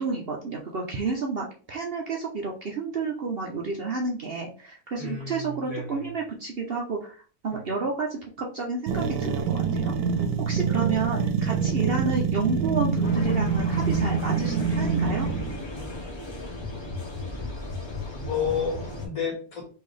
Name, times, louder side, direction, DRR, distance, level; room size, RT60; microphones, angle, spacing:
voice 1, 0.0-9.9 10.4-15.3, right 4 dB, 50° right, 0 dB, 0.7 m, -30 dB
voice 2, 5.0-6.1 7.5-7.6 11.5-12.0 18.1-19.7, left 5 dB, 65° left, 0 dB, 2.0 m, -32 dB
sound 1, 8.9-15.6, right 6 dB, 85° right, 1.2 m, -25 dB
sound 2, 13.0-19.1, left 2 dB, 25° left, 0.7 m, -35 dB
4.5 x 3.4 x 3.2 m, 0.38 s
omnidirectional pair, 1.6 m